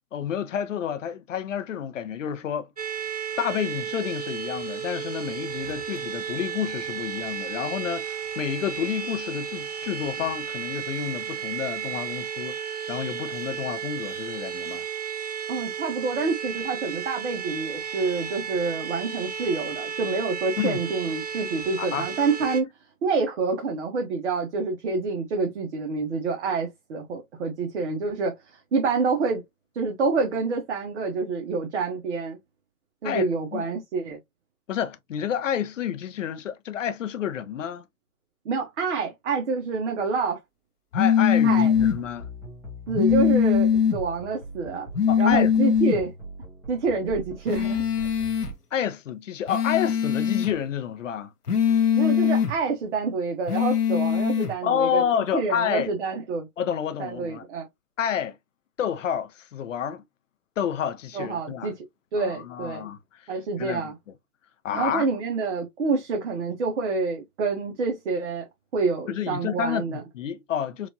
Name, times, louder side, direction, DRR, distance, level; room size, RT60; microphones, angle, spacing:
voice 1, 0.1-2.7 3.4-14.9 20.6-20.8 21.8-22.1 33.0-33.3 33.5-33.7 34.7-37.9 40.9-42.3 45.1-45.5 48.7-51.3 54.6-55.9 56.6-57.4 58.0-58.4 58.8-60.0 60.6-61.7 62.2-63.3 63.6-63.9 64.6-65.1 69.1-70.9, left 9 dB, 55° left, 0.7 m, -29 dB
sound 1, 2.8-22.6, right 8 dB, 30° right, 0.4 m, -33 dB
voice 2, 15.5-22.7 23.0-29.4 29.7-32.4 33.0-34.2 38.4-40.4 41.4-41.7 42.9-44.9 45.2-46.1 46.7-47.9 51.9-55.0 55.3-56.5 57.0-57.7 61.1-61.8 62.1-62.9 63.3-64.0 64.7-68.4 68.7-70.0, right 4 dB, 50° right, 1.1 m, -27 dB
sound 2, 40.9-42.0 42.9-44.0 44.9-46.0 47.5-48.5 49.5-50.5 51.5-52.5 53.5-54.5, left 8 dB, 85° left, 1.0 m, -21 dB
sound 3, 41.5-48.5, right 1 dB, 5° right, 1.7 m, -40 dB
4.6 x 2.6 x 2.7 m
figure-of-eight pair, 130°, 45 cm